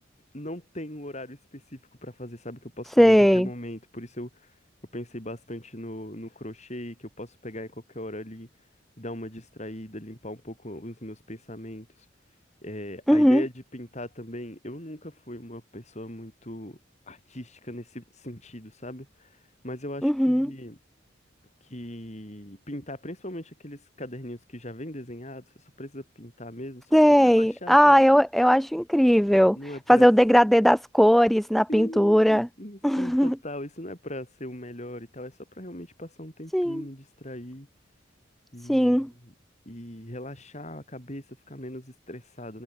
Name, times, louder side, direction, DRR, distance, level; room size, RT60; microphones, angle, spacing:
voice 1, 0.3-4.5 4.9-8.5 9.0-11.9 12.6-16.8 17.1-19.3 19.6-20.8 21.7-25.4 25.8-28.0 29.5-30.1 31.7-37.7 38.5-39.3 39.7-42.6, left 1 dB, 35° left, 7.9 m, -39 dB
voice 2, 3.0-3.5 13.1-13.4 20.0-20.5 26.9-29.6 29.9-32.5 32.8-33.3 36.5-36.8 38.7-39.1, equal, ahead, 0.5 m, -18 dB
head